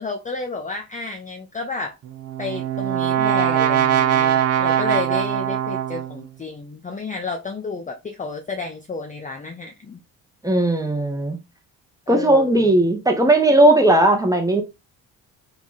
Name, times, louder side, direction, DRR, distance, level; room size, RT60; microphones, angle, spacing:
voice 1, 0.0-1.9 2.4-10.0 12.1-12.7, left 4 dB, 15° left, 0.6 m, -31 dB
Brass instrument, 2.1-6.2, right 10 dB, 35° right, 0.5 m, -21 dB
voice 2, 10.4-11.4 12.1-14.6, right 1 dB, 5° right, 1.1 m, -17 dB
3.5 x 2.3 x 4.1 m
figure-of-eight pair, 40°, 48 cm